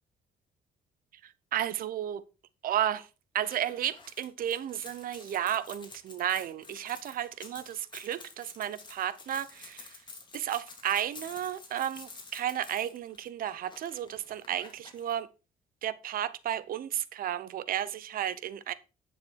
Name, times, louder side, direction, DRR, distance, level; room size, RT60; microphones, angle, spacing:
voice 1, 1.2-2.2 2.6-3.1 3.3-10.0 10.3-15.3 15.8-18.7, right 11 dB, 70° right, 0.9 m, -33 dB
sound 1, 3.4-15.1, left 3 dB, 30° left, 3.0 m, -50 dB
10.0 x 6.8 x 4.7 m
cardioid pair, 105°, 15 cm